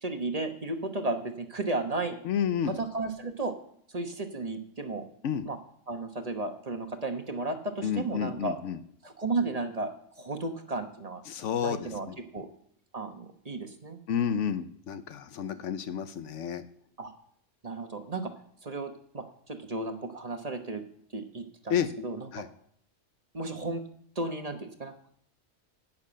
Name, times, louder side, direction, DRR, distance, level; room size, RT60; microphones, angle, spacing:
voice 1, 0.0-2.2 2.8-3.5 3.9-5.1 5.4-5.6 5.9-8.6 9.0-11.2 11.6-12.1 12.3-12.5 12.9-14.0 17.0-17.1 17.6-18.3 18.6-20.8 21.1-22.4 23.3-23.8 24.1-25.1, right 2 dB, 35° right, 5 dB, 1.1 m, -34 dB
voice 2, 2.2-2.8 5.2-5.4 7.8-8.8 11.3-12.2 14.1-16.6 21.7-21.9 22.3-22.5, left 8 dB, 80° left, 12 dB, 1.0 m, -30 dB
10.5 x 6.1 x 8.6 m, 0.65 s
omnidirectional pair, 1.2 m